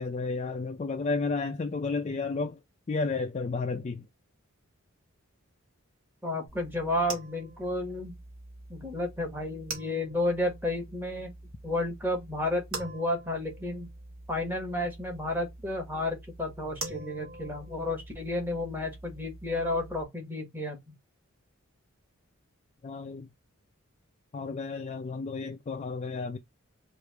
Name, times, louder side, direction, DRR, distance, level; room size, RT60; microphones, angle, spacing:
voice 1, 0.0-2.6 2.9-4.1 22.8-23.3 24.3-26.4, left 4 dB, 30° left, 0.3 m, -32 dB
voice 2, 6.2-8.2 8.7-11.3 11.6-13.9 14.3-20.8, left 1 dB, 10° right, 1.0 m, -32 dB
sound 1, 6.5-20.0, right 2 dB, 65° right, 1.3 m, -45 dB
3.2 x 2.5 x 3.2 m
head